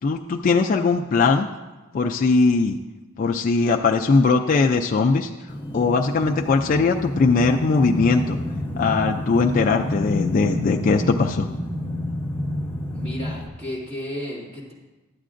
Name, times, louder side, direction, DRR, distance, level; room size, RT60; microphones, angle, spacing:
voice 1, 0.0-1.5 1.9-2.8 3.2-5.3 5.7-8.4 8.8-11.5, left 4 dB, 40° left, 2 dB, 0.3 m, -20 dB
sound 1, 5.5-13.5, left 1 dB, 10° left, 0.8 m, -29 dB
voice 2, 12.9-14.7, equal, 30° right, -5 dB, 2.3 m, -33 dB
12.0 x 8.3 x 2.5 m, 1.1 s
head